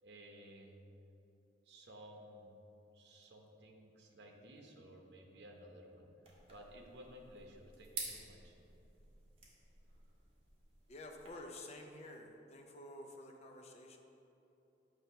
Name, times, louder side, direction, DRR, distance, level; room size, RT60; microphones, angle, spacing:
voice 1, 0.0-0.8 1.6-2.5 2.9-6.1 6.4-8.5, equal, 65° right, 1 dB, 0.9 m, -56 dB
sound 1, 6.2-11.3, right 3 dB, 35° right, 1.3 m, -51 dB
voice 2, 10.9-14.0, left 1 dB, 35° left, 2 dB, 0.5 m, -51 dB
8.0 x 3.3 x 5.6 m, 3.0 s
head